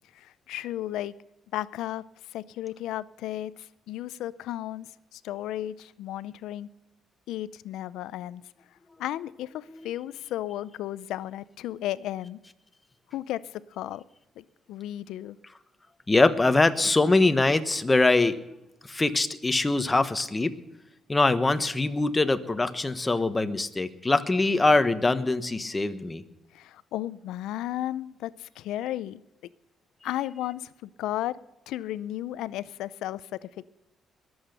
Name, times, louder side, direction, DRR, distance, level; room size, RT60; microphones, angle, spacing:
voice 1, 0.1-1.1 1.5-2.0 2.3-3.5 3.9-6.7 7.3-8.4 9.0-12.4 13.1-13.4 13.7-14.0 14.4-15.4 26.5-29.2 30.0-31.4 31.7-33.7, left 13 dB, 90° left, 18 dB, 0.5 m, -34 dB
voice 2, 16.1-18.4 18.8-20.5 21.1-26.2, left 2 dB, 20° left, 10 dB, 1.1 m, -23 dB
21.0 x 7.9 x 6.7 m, 0.93 s
cardioid pair, 90°, 0 cm